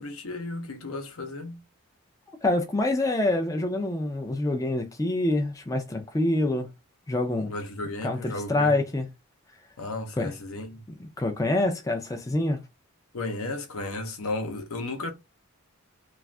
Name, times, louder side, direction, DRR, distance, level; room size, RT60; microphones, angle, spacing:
voice 1, 0.0-1.6 7.5-8.8 9.8-10.8 13.1-15.1, left 2 dB, 70° left, 0.7 m, -34 dB
voice 2, 2.4-6.7 7.1-7.5 8.0-9.1 10.2-10.3 11.0-12.6, left 2 dB, 15° left, 0.4 m, -26 dB
2.5 x 2.4 x 3.2 m
head